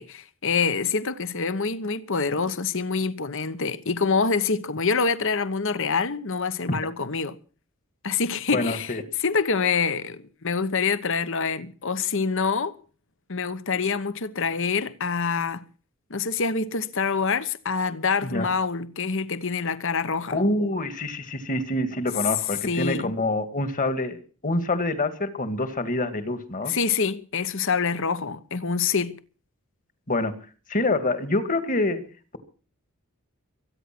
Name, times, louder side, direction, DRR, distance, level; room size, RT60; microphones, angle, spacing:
voice 1, 0.0-7.4 8.0-8.9 9.2-12.7 13.3-15.6 16.1-20.4 22.6-23.1 26.7-29.2, left 5 dB, 60° left, 1.1 m, -26 dB
voice 2, 8.5-9.0 18.2-18.5 20.3-26.7 30.1-30.3 30.7-32.0, left 2 dB, 35° left, 2.1 m, -26 dB
23.5 x 9.7 x 6.1 m
head